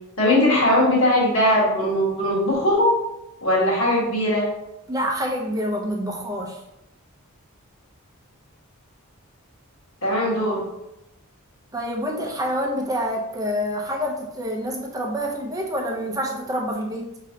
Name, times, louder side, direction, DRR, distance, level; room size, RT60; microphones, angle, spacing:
voice 1, 0.2-2.9 3.4-4.5 10.0-10.6, left 1 dB, 60° left, -7 dB, 1.5 m, -19 dB
voice 2, 4.9-6.6 11.7-17.1, equal, 15° right, 0 dB, 0.6 m, -27 dB
5.3 x 3.1 x 2.8 m, 0.88 s
head